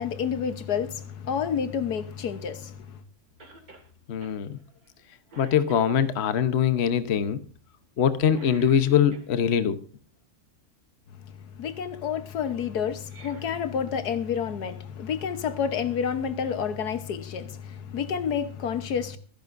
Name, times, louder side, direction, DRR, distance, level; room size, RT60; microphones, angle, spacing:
voice 1, 0.0-3.0 11.2-19.2, left 7 dB, 85° left, 1.6 m, -29 dB
Cough, 3.4-3.9 4.2-4.4 4.8-5.0 5.3-6.3 8.3-9.7 12.9-14.2 14.5-14.6 15.7-15.8, right 3 dB, 70° right, 2.9 m, -50 dB
voice 2, 4.1-4.6 5.4-7.4 8.0-9.8, left 8 dB, 50° left, 1.1 m, -23 dB
24.5 x 10.5 x 2.6 m
omnidirectional pair, 1.6 m